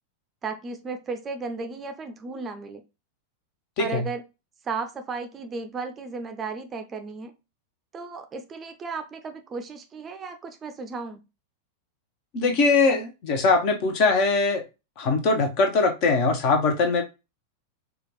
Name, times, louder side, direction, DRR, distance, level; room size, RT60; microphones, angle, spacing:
voice 1, 0.4-2.8 3.8-4.2 4.6-7.3 7.9-11.2, right 4 dB, 25° right, 0.5 m, -34 dB
voice 2, 12.3-14.6 15.0-17.0, left 3 dB, 45° left, 0.9 m, -21 dB
4.8 x 2.4 x 3.1 m
figure-of-eight pair, 90°, 0 cm